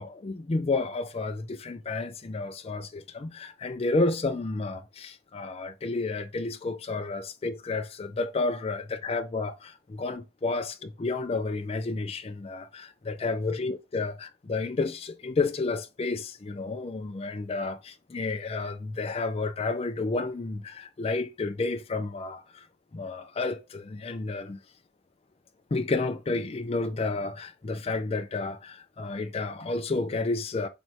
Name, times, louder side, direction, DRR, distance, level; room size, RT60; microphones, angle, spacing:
voice 1, 0.0-22.7 22.9-24.6 25.7-30.7, left 3 dB, 30° left, 0.4 m, -31 dB
4.5 x 2.2 x 4.0 m
head